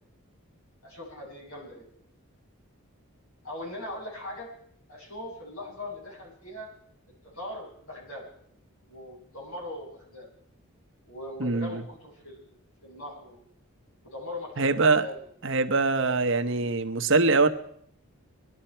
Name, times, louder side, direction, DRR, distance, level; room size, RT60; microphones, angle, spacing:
voice 1, 0.8-1.9 3.4-4.5 4.9-6.7 7.3-8.2 8.9-10.3 11.0-12.6 12.8-13.4 14.0-15.1, left 1 dB, 75° left, -3 dB, 6.9 m, -40 dB
voice 2, 11.4-11.8 14.6-15.1 15.4-17.5, right 3 dB, 55° right, 8 dB, 1.0 m, -23 dB
22.0 x 12.0 x 4.5 m, 0.67 s
head